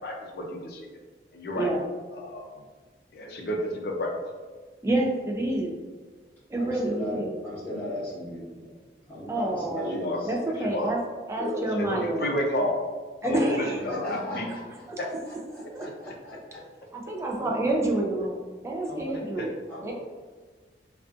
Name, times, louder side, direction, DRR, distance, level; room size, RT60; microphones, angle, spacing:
voice 1, 0.0-0.9 1.3-1.7 2.1-2.5 3.1-4.1 9.9-10.2 10.6-10.9 11.8-12.8 13.3-14.5 15.0-15.1 15.8-15.9 19.1-19.5, left 1 dB, 60° left, 1 dB, 0.4 m, -31 dB
voice 2, 4.8-5.7 6.5-7.4 9.3-11.0 11.3-12.2 13.2-13.8 14.9-15.0 15.7-15.8 16.9-18.4 18.6-19.5 19.8-19.9, right 2 dB, 15° right, -1 dB, 0.3 m, -28 dB
voice 3, 6.6-8.5 9.1-10.3 11.4-11.6 13.2-14.8 15.2-16.6 17.2-17.5 18.9-19.2 19.7-19.9, left 1 dB, 10° left, -12 dB, 1.0 m, -35 dB
2.4 x 2.3 x 2.4 m, 1.4 s
head